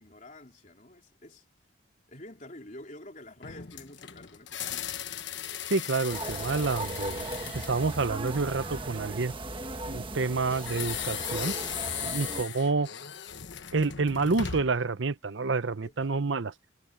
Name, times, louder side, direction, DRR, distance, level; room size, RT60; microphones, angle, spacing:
voice 1, 0.0-1.4 2.1-5.1 11.9-12.3 15.8-16.2, left 1 dB, 40° left, 3.7 m, -48 dB
sound 1, 3.4-8.8 10.5-14.9, left 9 dB, 60° left, 1.2 m, -38 dB
voice 2, 5.7-9.3 9.9-11.6 12.0-12.9 13.7-16.5, right 3 dB, 65° right, 0.8 m, -28 dB
sound 2, 6.1-12.4, right 2 dB, 25° right, 1.5 m, -37 dB
head